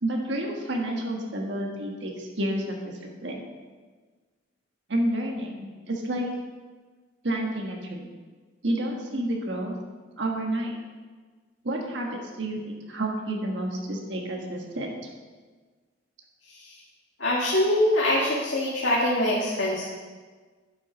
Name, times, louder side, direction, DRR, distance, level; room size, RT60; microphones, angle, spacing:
voice 1, 0.0-3.4 4.9-6.3 7.2-8.1 8.6-9.8 10.2-10.8 11.6-15.0, right 1 dB, 65° right, 0 dB, 1.5 m, -30 dB
voice 2, 17.2-19.8, left 1 dB, 80° left, -4 dB, 1.8 m, -24 dB
11.5 x 7.3 x 5.2 m, 1.4 s
head